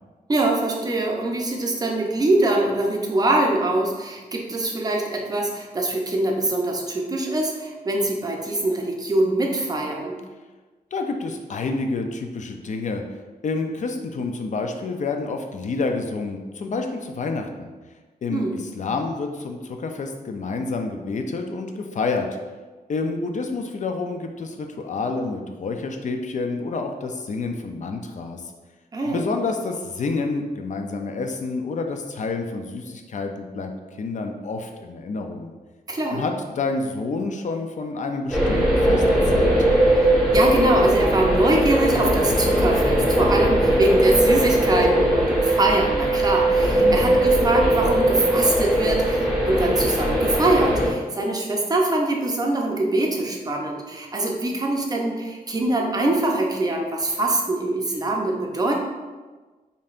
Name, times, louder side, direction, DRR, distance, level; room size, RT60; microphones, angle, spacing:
voice 1, 0.3-10.2 18.3-18.6 28.9-29.2 35.9-36.2 40.0-58.7, right 2 dB, 25° right, 0 dB, 0.6 m, -23 dB
voice 2, 10.9-13.0 13.4-17.7 18.2-22.3 22.9-28.5 29.0-33.7 34.0-35.5 36.1-39.6 46.8-47.2, left 3 dB, 50° left, 5 dB, 0.4 m, -28 dB
sound 1, 38.3-50.9, right 1 dB, ahead, 0.8 m, -19 dB
5.2 x 2.7 x 2.4 m, 1.3 s
wide cardioid pair, 135°, 16 cm